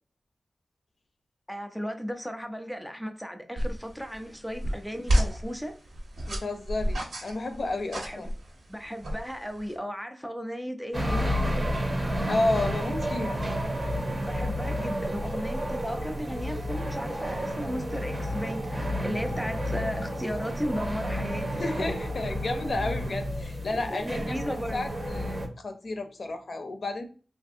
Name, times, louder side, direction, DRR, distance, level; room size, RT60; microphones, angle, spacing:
voice 1, 1.5-5.8 8.0-8.3 8.7-11.8 14.2-21.6 23.7-24.9, equal, ahead, 0.4 m, -35 dB
sound 1, 3.6-9.8, equal, 85° right, 1.2 m, -31 dB
voice 2, 6.3-8.3 12.3-13.4 21.6-27.0, left 2 dB, 55° left, 0.6 m, -31 dB
sound 2, 10.9-25.5, equal, 30° right, 0.7 m, -31 dB
3.3 x 2.4 x 2.5 m
wide cardioid pair, 125°, 0 cm